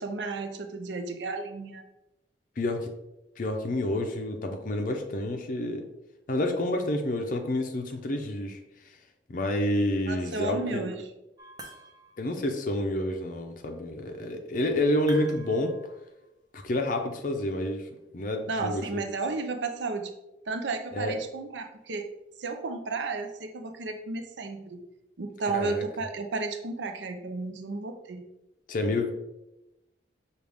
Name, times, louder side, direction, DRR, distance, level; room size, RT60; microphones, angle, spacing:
voice 1, 0.0-1.8 10.1-11.1 18.5-20.1 20.5-22.1 22.4-24.8 25.2-28.2, right 3 dB, 70° right, 6 dB, 0.5 m, -33 dB
voice 2, 2.6-2.9 3.4-5.9 6.3-8.6 9.3-10.9 12.2-15.7 16.5-17.9 18.1-19.0 20.9-21.2 25.5-25.8 28.7-29.1, left 1 dB, 45° left, 4 dB, 0.5 m, -29 dB
sound 1, 11.4-12.4 15.1-16.2, right 2 dB, 20° right, 0.5 m, -46 dB
6.3 x 2.4 x 3.4 m, 0.93 s
head